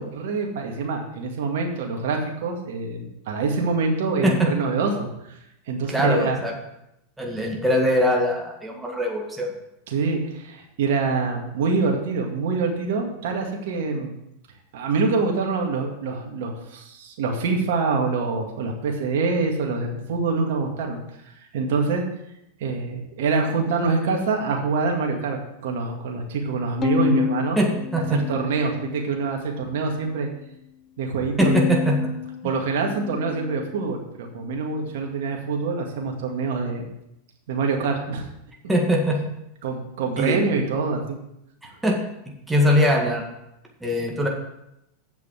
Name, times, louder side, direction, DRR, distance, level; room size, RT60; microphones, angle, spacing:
voice 1, 0.0-5.4 5.7-6.4 9.9-14.1 14.7-21.0 21.3-22.0 22.6-27.7 28.1-30.3 31.0-31.7 32.4-36.9 37.5-38.2 39.6-41.2, right 4 dB, 70° right, 1 dB, 2.2 m, -25 dB
voice 2, 5.9-6.5 7.2-9.5 27.6-28.2 31.4-32.0 38.7-39.2 40.2-40.4 41.8-42.0 42.5-43.2 43.8-44.3, equal, 5° right, -1 dB, 2.0 m, -21 dB
Bowed string instrument, 26.8-29.2 29.6-30.4 31.4-33.9, left 7 dB, 30° left, 0.8 m, -30 dB
7.7 x 6.0 x 7.6 m, 0.84 s
hypercardioid pair, 115°, 0 cm